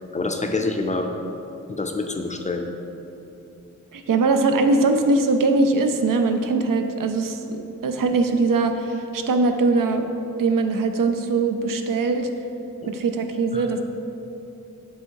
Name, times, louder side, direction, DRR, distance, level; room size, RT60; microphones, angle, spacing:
voice 1, 0.1-1.1 1.7-2.7 12.8-12.9 13.5-13.7, left 3 dB, 25° left, 4 dB, 0.4 m, -26 dB
voice 2, 3.9-7.4 7.8-10.1 10.4-12.3 12.9-13.8, right 3 dB, 80° right, 7 dB, 0.5 m, -21 dB
7.0 x 3.5 x 4.6 m, 2.8 s
wide cardioid pair, 120°, 32 cm